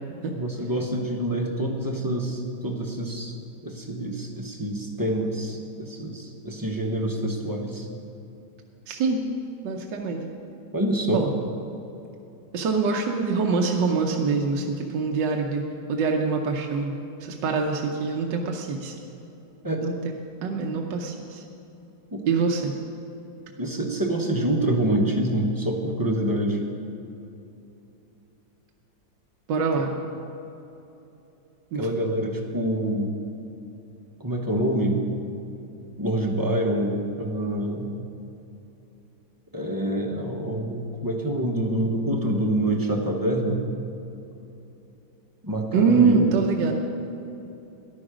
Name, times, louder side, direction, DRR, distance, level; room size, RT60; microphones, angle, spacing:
voice 1, 0.3-3.3 3.6-7.9 10.7-11.3 19.6-19.8 22.1-22.2 23.6-26.6 29.8-29.9 31.7-33.2 34.2-35.0 36.0-37.9 39.5-43.6 45.4-46.3, right 1 dB, 15° right, 1 dB, 0.8 m, -26 dB
voice 2, 8.9-9.2 9.6-10.2 11.1-11.3 12.5-18.9 19.8-19.9 20.4-21.4 22.3-22.7 29.5-30.0 31.7-31.8 45.7-46.7, right 4 dB, 75° right, 1 dB, 1.6 m, -24 dB
14.0 x 11.0 x 5.0 m, 2.9 s
omnidirectional pair, 2.0 m